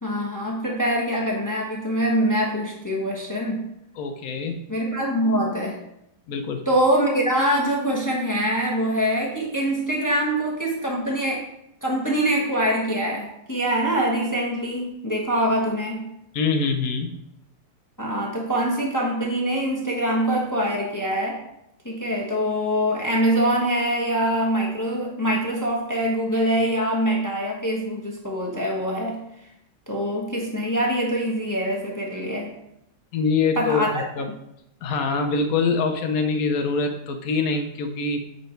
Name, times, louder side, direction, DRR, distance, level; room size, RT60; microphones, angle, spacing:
voice 1, 0.0-3.7 4.7-5.8 6.7-11.5 11.8-16.1 18.0-21.4 21.8-29.2 29.9-32.5 33.5-34.0, right 1 dB, 20° left, -2 dB, 0.5 m, -24 dB
voice 2, 4.0-4.6 6.3-6.6 16.3-17.1 33.1-34.3 34.8-38.2, left 4 dB, 75° left, 5 dB, 0.8 m, -24 dB
8.1 x 4.3 x 4.5 m, 0.80 s
omnidirectional pair, 2.4 m